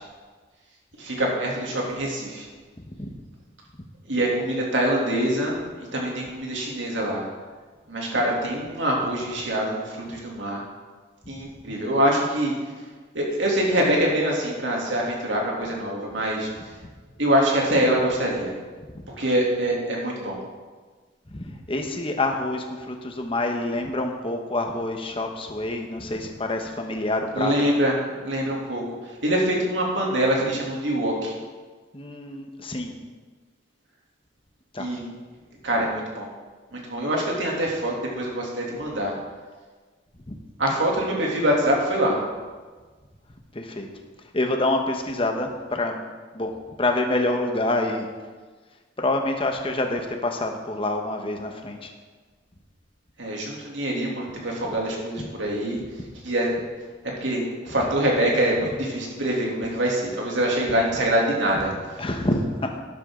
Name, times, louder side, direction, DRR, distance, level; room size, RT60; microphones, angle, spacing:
voice 1, 1.0-2.5 4.1-7.2 7.9-10.6 11.3-12.5 13.1-16.5 17.2-18.5 19.1-20.4 27.3-31.3 34.8-35.0 35.6-36.3 36.7-39.1 40.6-42.2 53.2-55.8 56.2-56.5 57.2-61.7, right 1 dB, 75° right, -2 dB, 2.9 m, -24 dB
voice 2, 2.8-3.1 11.2-11.3 18.9-19.0 21.3-27.5 31.9-32.9 34.7-34.9 43.5-43.9 44.3-46.0 46.3-46.5 46.8-48.1 49.0-51.9 57.8-57.9 62.0-62.7, left 2 dB, 30° left, 3 dB, 1.1 m, -27 dB
12.5 x 11.0 x 3.8 m, 1.4 s
head